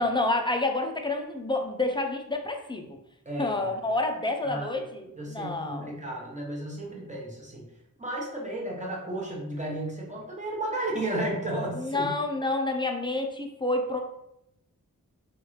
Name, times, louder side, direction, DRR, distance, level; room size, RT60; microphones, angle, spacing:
voice 1, 0.0-2.9 3.4-5.9 11.7-14.0, left 2 dB, 15° left, 3 dB, 0.4 m, -28 dB
voice 2, 3.2-3.8 4.4-4.8 5.1-7.7 8.0-12.1, right 1 dB, 20° right, -2 dB, 0.9 m, -33 dB
3.0 x 2.4 x 3.1 m, 0.82 s
wide cardioid pair, 50°, 37 cm